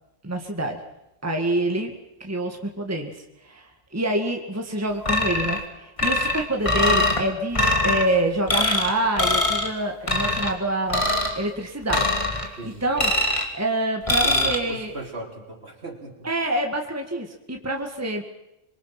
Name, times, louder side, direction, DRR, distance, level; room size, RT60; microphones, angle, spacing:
voice 1, 0.2-0.8 1.2-1.9 2.2-11.1 11.4-14.9 16.2-18.2, right 1 dB, 10° right, 2 dB, 1.9 m, -27 dB
sound 1, 5.1-5.6 6.0-7.2 7.5-8.0 8.5-8.9 9.2-9.7 10.1-10.5 10.9-11.4 11.9-12.5 13.0-13.5 14.1-14.6, left 1 dB, 25° left, 2.6 m, -22 dB
voice 2, 12.6-12.9 14.2-16.1, right 2 dB, 55° right, 2 dB, 3.8 m, -37 dB
26.5 x 23.0 x 6.0 m, 0.90 s
omnidirectional pair, 1.3 m